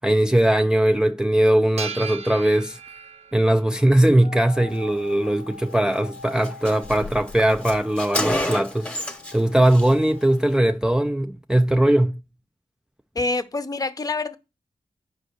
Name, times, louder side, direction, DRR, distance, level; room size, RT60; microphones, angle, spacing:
voice 1, 0.0-2.8 3.3-8.9 9.3-12.2, right 1 dB, 5° right, 0.3 m, -20 dB
sound 1, 1.8-4.7, right 6 dB, 75° right, 0.5 m, -37 dB
sound 2, 4.2-10.4, left 3 dB, 85° left, 0.5 m, -42 dB
Car, 5.7-5.9 6.1-6.2 6.4-9.4 9.7-9.9, left 1 dB, 10° left, 0.9 m, -29 dB
voice 2, 13.1-14.4, left 3 dB, 35° left, 0.6 m, -26 dB
5.3 x 5.1 x 6.5 m
wide cardioid pair, 135°, 11 cm